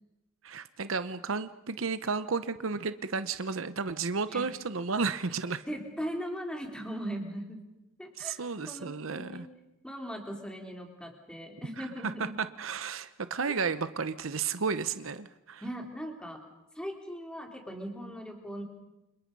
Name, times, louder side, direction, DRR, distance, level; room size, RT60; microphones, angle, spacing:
voice 1, 0.4-5.7 8.2-9.5 11.8-15.6, right 5 dB, 80° right, 12 dB, 0.9 m, -33 dB
voice 2, 5.7-7.6 8.0-8.4 8.7-9.5 9.8-12.4 15.6-16.4 16.8-18.6, equal, 5° left, 2 dB, 3.7 m, -39 dB
30.0 x 27.5 x 5.5 m, 0.93 s
head